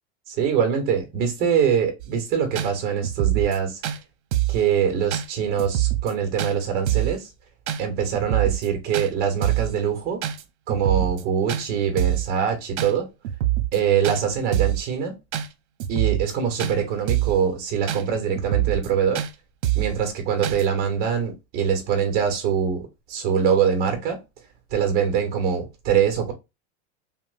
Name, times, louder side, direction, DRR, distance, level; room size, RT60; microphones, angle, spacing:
voice 1, 0.3-3.8 4.5-7.3 7.8-10.2 10.7-13.1 13.7-15.2 15.9-19.2 19.7-24.2 24.7-26.3, right 7 dB, 25° right, 1.2 m, -23 dB
sound 1, 2.0-2.1 2.5-2.7 3.0-3.6 3.8-4.0 4.3-4.6 5.1-5.3 5.6-6.1 6.4-6.5 6.9-7.2 7.7-7.8 8.1-8.7 8.9-9.1 9.4-9.7 10.2-10.4 10.7-11.2 11.5-11.6 12.0-12.3 12.8-12.9 13.2-13.8 14.0-14.2 14.5-14.8 15.3-15.5 15.8-16.3 16.6-16.7 17.1-17.4 17.9-18.0 18.3-18.9 19.1-19.3 19.6-19.9 20.4-20.6, right 14 dB, 75° right, 0.7 m, -24 dB
5.6 x 2.3 x 2.5 m
supercardioid pair, 175°, 34 cm